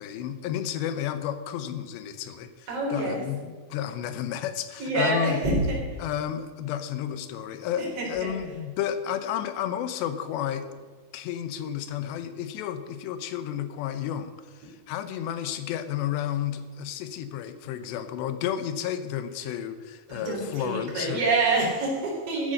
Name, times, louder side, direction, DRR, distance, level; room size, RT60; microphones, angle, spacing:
voice 1, 0.0-5.4 6.0-10.7 11.1-21.4, left 10 dB, 85° left, 11 dB, 3.1 m, -32 dB
voice 2, 2.7-3.2 4.8-5.8 7.8-8.3 20.1-22.5, right 2 dB, 35° right, -4 dB, 4.7 m, -26 dB
14.0 x 9.6 x 6.6 m, 1.5 s
omnidirectional pair, 4.9 m